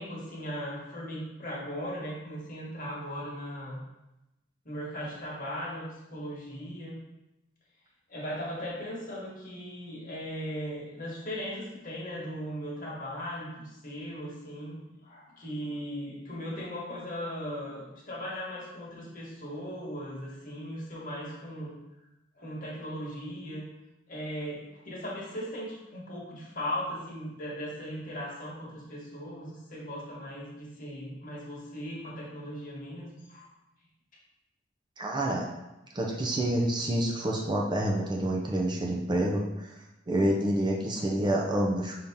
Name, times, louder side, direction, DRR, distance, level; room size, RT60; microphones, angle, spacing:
voice 1, 0.0-3.8 4.6-5.9 6.1-7.0 8.1-21.7 22.4-23.6 24.1-33.5, equal, 45° left, -4 dB, 1.3 m, -38 dB
voice 2, 35.0-35.5 35.9-39.7 40.1-42.0, right 1 dB, 25° right, -1 dB, 0.5 m, -28 dB
5.4 x 2.8 x 3.5 m, 0.95 s
head